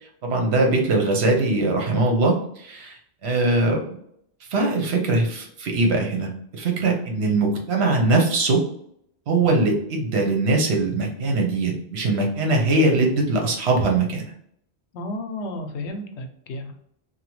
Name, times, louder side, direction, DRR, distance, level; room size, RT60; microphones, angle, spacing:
voice 1, 0.2-4.0 4.5-8.6 9.3-14.2, right 2 dB, 70° right, 1 dB, 1.0 m, -21 dB
voice 2, 14.9-16.7, left 1 dB, 80° left, 5 dB, 0.9 m, -32 dB
2.8 x 2.3 x 3.0 m, 0.69 s
omnidirectional pair, 1.1 m